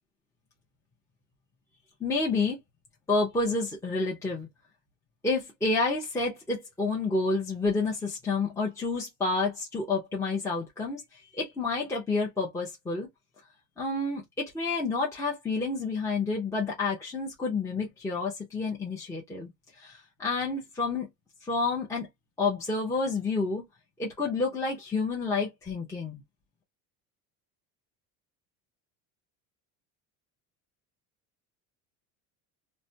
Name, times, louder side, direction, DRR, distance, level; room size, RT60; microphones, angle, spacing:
voice 1, 2.0-2.6 3.1-4.5 5.2-13.1 13.8-19.5 19.8-21.1 21.4-22.1 22.4-23.6 24.0-26.2, left 3 dB, 10° left, 0.7 m, -29 dB
3.2 x 2.2 x 2.7 m
cardioid pair, 150°, 35 cm